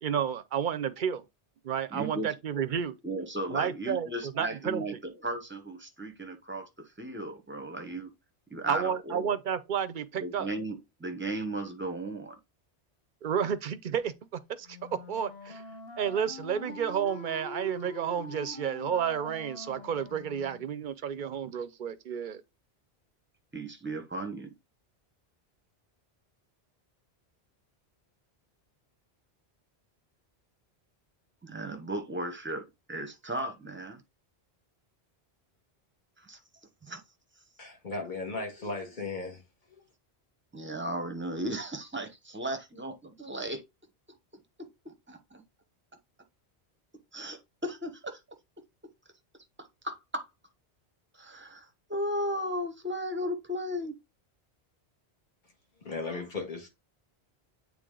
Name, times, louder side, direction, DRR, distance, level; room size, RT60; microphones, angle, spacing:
voice 1, 0.0-1.2 1.6-3.0 3.5-4.8 8.7-10.5 13.2-15.6 16.0-22.4, right 8 dB, 55° right, 0.6 m, -31 dB
voice 2, 1.9-2.3 3.0-6.7 7.0-8.1 8.5-9.3 10.1-12.4 23.5-24.5 31.4-34.0 36.2-36.4 36.8-37.0 40.5-43.6 44.6-45.4 47.1-48.2 49.6-50.3 51.1-53.9, right 1 dB, 10° right, 0.8 m, -36 dB
Wind instrument woodwind instrument, 14.6-20.7, left 3 dB, 70° left, 1.3 m, -45 dB
voice 3, 37.6-39.4 39.7-39.8 55.8-56.7, left 3 dB, 45° left, 1.9 m, -36 dB
8.2 x 3.5 x 3.7 m
omnidirectional pair, 1.1 m